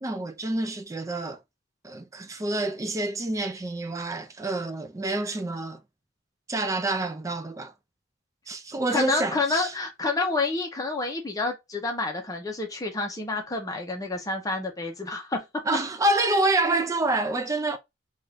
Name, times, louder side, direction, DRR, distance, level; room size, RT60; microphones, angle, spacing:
voice 1, 0.0-1.4 1.8-5.8 6.5-7.7 8.5-9.7 15.7-17.8, right 2 dB, 15° right, 0.4 m, -27 dB
voice 2, 8.9-15.4, left 3 dB, 20° left, 0.6 m, -29 dB
2.6 x 2.4 x 3.3 m
head